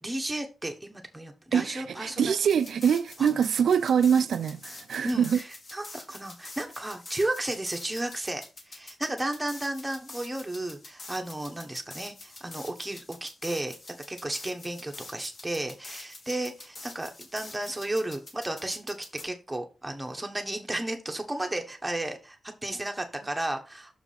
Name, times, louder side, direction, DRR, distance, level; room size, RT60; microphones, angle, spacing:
voice 1, 0.0-2.3 5.0-24.0, right 1 dB, 10° right, 1.2 m, -33 dB
voice 2, 1.5-5.4, right 7 dB, 85° right, 0.4 m, -24 dB
sound 1, 2.5-19.2, left 2 dB, 40° left, 1.7 m, -46 dB
6.5 x 4.8 x 5.6 m
wide cardioid pair, 175°, 0 cm